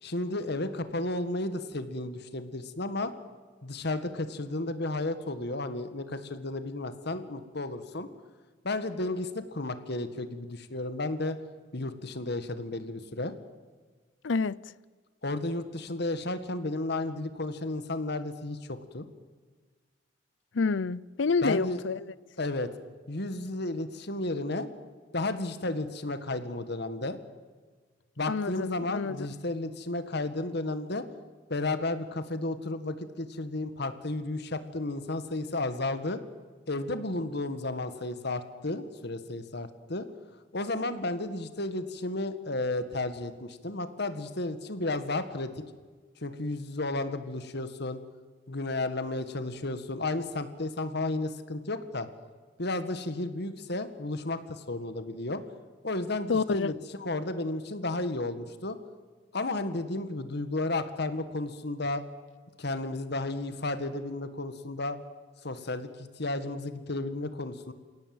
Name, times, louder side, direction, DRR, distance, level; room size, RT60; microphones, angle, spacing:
voice 1, 0.0-3.1 3.6-8.1 8.6-11.4 11.7-13.3 15.2-19.1 21.4-21.8 22.4-22.7 23.1-24.7 25.1-27.2 28.2-31.0 31.5-36.2 36.7-40.1 40.5-45.5 46.2-48.0 48.5-52.1 52.6-55.4 55.8-58.8 59.3-62.0 62.6-65.0 65.4-67.7, left 2 dB, 60° left, 1.8 m, -33 dB
voice 2, 14.2-14.6 20.5-22.1 28.3-29.3 56.3-56.7, left 4 dB, 80° left, 0.6 m, -28 dB
28.5 x 17.5 x 7.9 m
head